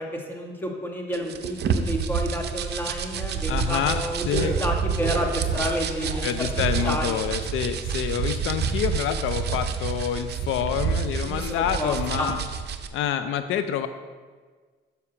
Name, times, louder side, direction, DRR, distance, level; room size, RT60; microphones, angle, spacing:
voice 1, 0.0-6.5 6.8-7.2 11.2-12.3, equal, 10° left, 1 dB, 1.4 m, -30 dB
sound 1, 1.1-12.9, right 6 dB, 55° right, 0.6 m, -28 dB
sound 2, 2.9-6.3 6.6-8.6 8.9-9.0 9.3-9.4 9.8-9.9 10.5-10.8 11.6-11.7, right 1 dB, 40° right, 2.5 m, -38 dB
voice 2, 3.5-4.5 6.2-12.4 12.9-13.9, left 9 dB, 85° left, 10 dB, 0.4 m, -27 dB
7.0 x 5.6 x 4.9 m, 1.5 s
cardioid pair, 90°, 20 cm